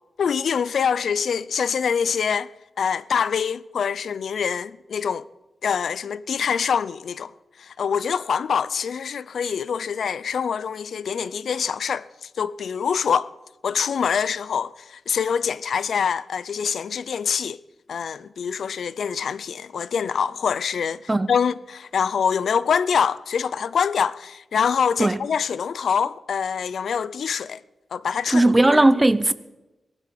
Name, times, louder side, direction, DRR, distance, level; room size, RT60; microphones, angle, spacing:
voice 1, 0.2-2.5 2.8-5.2 5.6-7.3 7.6-13.3 13.6-17.6 17.9-27.6 27.9-28.8, left 7 dB, 85° left, 0.5 m, -25 dB
voice 2, 28.3-29.3, right 2 dB, 15° right, 0.6 m, -17 dB
19.0 x 12.5 x 5.9 m
wide cardioid pair, 170°, 0 cm